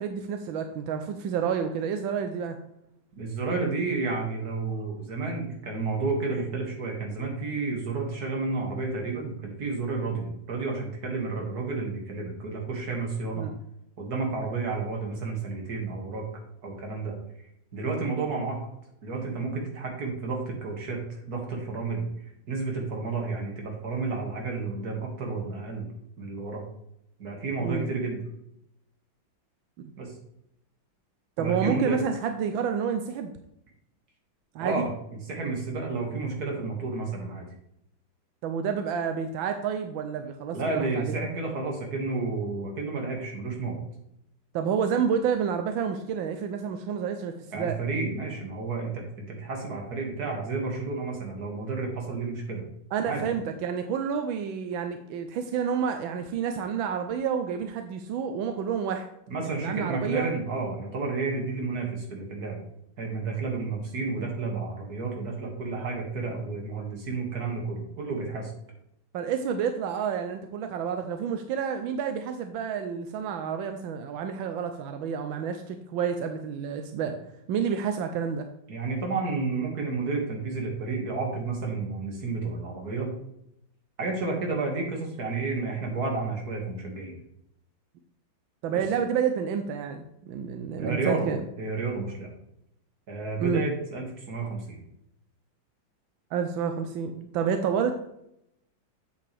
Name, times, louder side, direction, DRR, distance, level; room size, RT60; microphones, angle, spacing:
voice 1, 0.0-2.6 13.4-13.6 27.6-27.9 29.8-29.9 31.4-33.3 34.5-34.9 38.4-41.2 44.5-47.8 52.9-59.1 59.4-60.3 69.1-77.2 77.5-78.5 88.6-91.4 93.4-93.6 96.3-98.1, right 7 dB, 85° right, 6 dB, 1.4 m, -29 dB
voice 2, 3.2-13.5 14.0-16.2 16.6-17.2 17.7-18.6 19.0-21.0 21.3-22.1 22.5-25.9 26.2-26.6 27.2-28.2 30.0-30.1 31.4-32.0 34.6-34.9 35.3-37.5 40.5-43.8 47.5-52.6 53.0-53.3 59.3-62.6 63.0-68.5 78.7-83.1 84.0-87.2 88.7-88.8 90.8-91.3 91.6-92.3 93.1-94.8, right 3 dB, 50° right, 0 dB, 2.5 m, -31 dB
8.2 x 7.7 x 3.4 m, 0.79 s
omnidirectional pair, 2.1 m